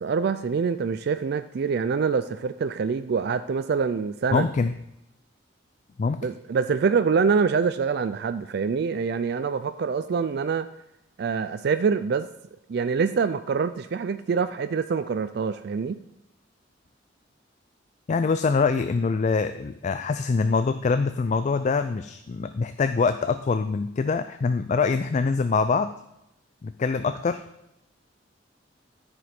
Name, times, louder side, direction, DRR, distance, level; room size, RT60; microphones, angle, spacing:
voice 1, 0.0-4.5 6.2-10.7 11.2-12.3 12.7-16.0, right 5 dB, 60° right, 10 dB, 0.4 m, -25 dB
voice 2, 4.3-4.7 6.0-6.3 18.1-25.9 26.6-27.5, left 4 dB, 40° left, 10 dB, 0.3 m, -24 dB
13.5 x 5.2 x 4.4 m, 0.84 s
head